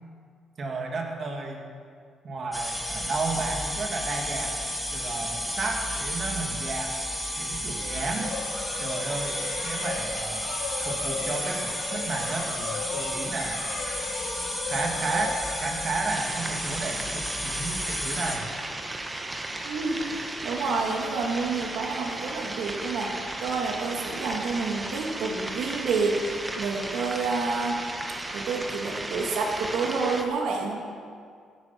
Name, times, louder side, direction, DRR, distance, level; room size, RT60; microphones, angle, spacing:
voice 1, 0.6-1.7 2.2-4.5 4.9-6.9 7.4-8.3 8.8-10.5 10.8-13.7 14.7-18.5, right 3 dB, 50° right, 1 dB, 2.6 m, -32 dB
sound 1, 2.5-18.4, equal, 5° left, 3.1 m, -32 dB
sound 2, 7.7-16.5, left 4 dB, 75° left, 2.3 m, -36 dB
sound 3, 16.1-30.2, right 2 dB, 20° right, 1.4 m, -35 dB
voice 2, 19.6-23.1 23.4-27.8 28.3-30.8, right 4 dB, 80° right, 0 dB, 2.3 m, -29 dB
16.5 x 9.7 x 6.0 m, 2.1 s
cardioid pair, 90°, 0 cm